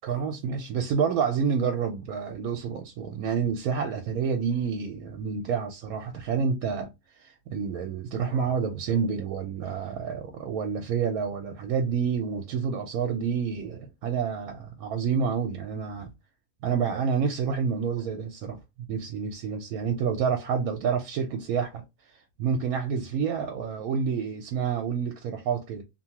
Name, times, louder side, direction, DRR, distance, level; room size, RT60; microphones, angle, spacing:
voice 1, 0.0-6.9 7.2-16.1 16.6-18.6 18.9-21.8 22.4-25.8, right 6 dB, 75° right, 1.0 m, -28 dB
2.8 x 2.2 x 2.8 m
omnidirectional pair, 1.6 m